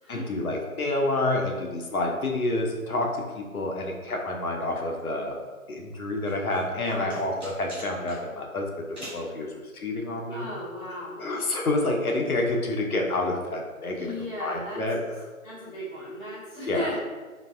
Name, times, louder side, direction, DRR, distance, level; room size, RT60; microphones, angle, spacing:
voice 1, 0.1-3.1 3.3-5.4 5.7-10.5 10.9-15.0 16.7-16.9, left 2 dB, 75° left, 1 dB, 0.7 m, -28 dB
sound 1, 6.2-8.2 8.9-9.3, equal, ahead, 1.1 m, -42 dB
voice 2, 6.9-7.3 10.3-11.3 13.9-14.8 15.4-17.0, left 1 dB, 35° left, -9 dB, 1.4 m, -36 dB
3.1 x 2.6 x 2.2 m, 1.4 s
figure-of-eight pair, 160°, 43 cm